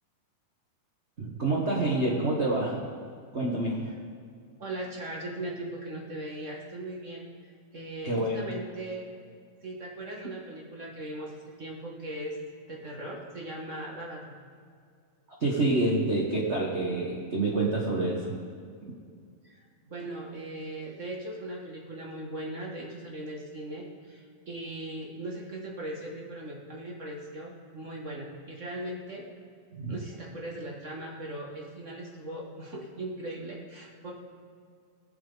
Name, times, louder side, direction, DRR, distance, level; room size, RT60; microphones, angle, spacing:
voice 1, 1.2-2.9 3.3-3.8 8.0-8.4 15.4-18.4 29.7-29.9, right 2 dB, 75° right, -3 dB, 0.6 m, -27 dB
voice 2, 4.6-7.3 7.7-9.0 9.6-12.3 12.7-14.3 19.4-19.6 19.9-29.2 29.9-34.1, right 1 dB, 35° right, -2 dB, 1.3 m, -39 dB
23.0 x 7.9 x 4.0 m, 2.2 s
omnidirectional pair, 3.6 m